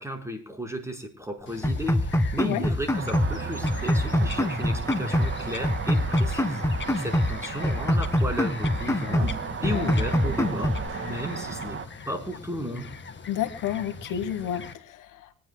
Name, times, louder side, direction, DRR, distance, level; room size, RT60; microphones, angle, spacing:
voice 1, 0.0-9.4 9.6-11.8 12.1-12.9, equal, 10° right, 3 dB, 5.1 m, -34 dB
Bird vocalization bird call bird song, 1.5-14.7, left 5 dB, 35° left, 1.8 m, -42 dB
sound 1, 1.6-3.4 3.6-5.4 5.6-7.4 7.6-9.4 9.6-10.9, left 1 dB, 10° left, 1.6 m, -25 dB
sound 2, 2.9-11.9, right 5 dB, 40° right, 2.2 m, -35 dB
voice 2, 13.3-15.3, left 10 dB, 80° left, 10 dB, 1.6 m, -30 dB
25.5 x 10.5 x 2.3 m, 0.27 s
cardioid pair, 80°, 31 cm